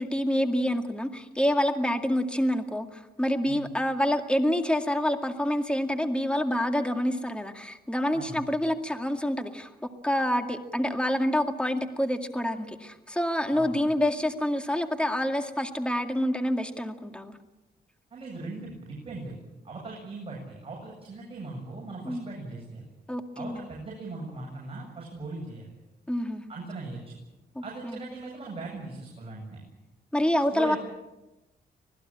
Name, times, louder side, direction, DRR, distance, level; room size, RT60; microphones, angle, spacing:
voice 1, 0.0-17.4 22.1-22.2 23.1-23.7 26.1-26.4 27.6-28.0 30.1-30.8, left 1 dB, 5° left, 6 dB, 2.1 m, -27 dB
voice 2, 18.1-19.3 19.6-22.9 23.3-25.7 26.5-27.2 27.6-29.6 30.5-30.8, right 3 dB, 35° right, -2 dB, 8.0 m, -39 dB
25.5 x 19.0 x 8.7 m, 0.99 s
cardioid pair, 110°, 17 cm